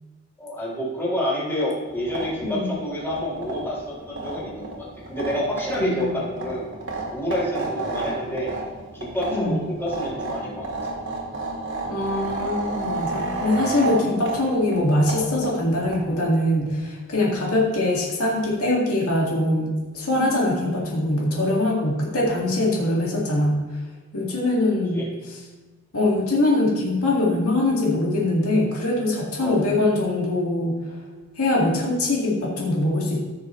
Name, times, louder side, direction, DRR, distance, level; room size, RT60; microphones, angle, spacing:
voice 1, 0.4-6.7 7.1-8.5 8.9-10.7 24.9-25.0 29.4-29.6, equal, 10° left, -7 dB, 3.3 m, -28 dB
sound 1, 1.9-16.3, right 2 dB, 60° right, 2.1 m, -32 dB
voice 2, 5.8-6.2 9.3-9.6 11.9-23.6 24.1-25.0 25.9-30.8 31.4-33.2, left 1 dB, 75° left, -3 dB, 2.0 m, -22 dB
15.5 x 6.6 x 3.1 m, 1.3 s
head